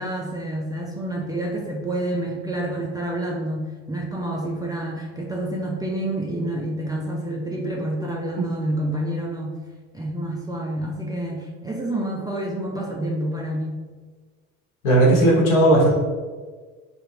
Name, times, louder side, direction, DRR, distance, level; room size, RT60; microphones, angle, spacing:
voice 1, 0.0-9.6 9.9-13.8, right 1 dB, 10° right, -2 dB, 0.4 m, -28 dB
voice 2, 14.8-16.0, right 1 dB, 65° left, -2 dB, 1.1 m, -16 dB
3.5 x 2.7 x 3.0 m, 1.4 s
figure-of-eight pair, 55°, 42 cm